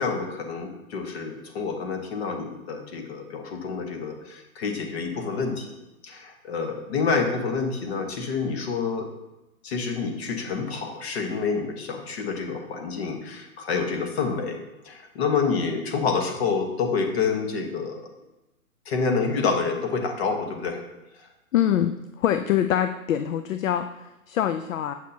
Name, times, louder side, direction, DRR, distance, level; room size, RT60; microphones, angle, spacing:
voice 1, 0.0-5.8 6.0-9.1 9.6-14.6 14.8-18.0 18.9-20.8 21.2-21.3, left 5 dB, 45° left, 4 dB, 1.3 m, -28 dB
voice 2, 21.5-24.9, left 10 dB, 65° left, 9 dB, 0.5 m, -24 dB
7.4 x 6.0 x 2.8 m, 0.98 s
hypercardioid pair, 140°, 43 cm